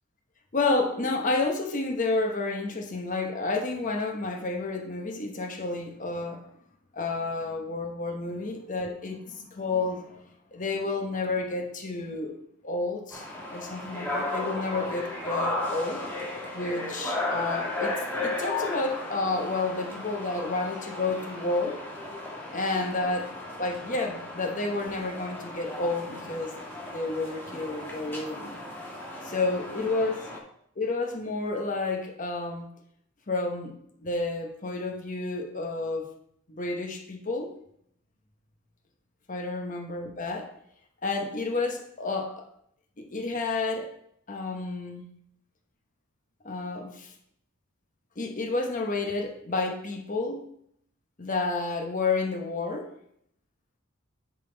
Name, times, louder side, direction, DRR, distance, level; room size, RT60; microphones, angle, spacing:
voice 1, 0.5-6.4 6.9-10.2 10.5-12.3 12.6-16.0 16.5-17.9 18.2-21.8 22.5-26.6 26.9-28.6 29.2-30.2 30.8-32.7 33.3-36.1 36.5-37.5 39.3-40.5 41.0-42.5 43.0-43.9 44.3-45.0 46.4-47.1 48.2-50.5 51.2-52.9, left 3 dB, 40° left, 2 dB, 1.1 m, -30 dB
sound 1, 13.1-30.4, left 2 dB, 10° left, 1.3 m, -35 dB
9.9 x 4.0 x 4.0 m, 0.70 s
head